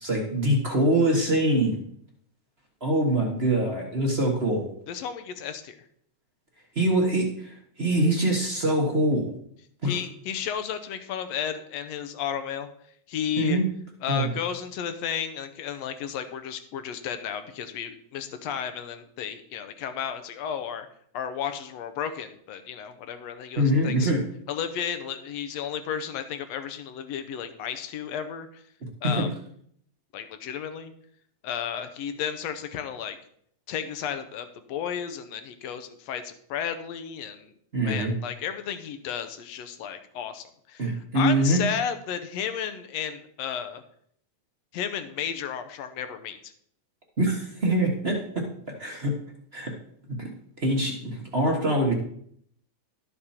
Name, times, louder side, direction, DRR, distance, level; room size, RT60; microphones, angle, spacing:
voice 1, 0.0-1.8 2.8-4.6 6.7-7.5 7.8-9.3 9.8-9.9 13.4-13.6 14.1-14.3 23.6-24.2 29.0-29.3 37.7-38.1 40.8-41.6 47.2-48.4 48.8-49.1 49.5-49.7 50.2-50.3 50.6-51.9, right 1 dB, 40° right, 0 dB, 0.9 m, -24 dB
voice 2, 4.9-5.8 9.8-12.7 13.1-13.6 14.0-20.9 21.1-24.1 24.5-28.6 29.0-29.3 30.1-30.9 31.4-33.2 33.7-37.5 37.8-43.8 44.7-46.5, left 8 dB, 70° left, 9 dB, 1.8 m, -33 dB
12.0 x 6.8 x 4.3 m, 0.66 s
omnidirectional pair, 3.5 m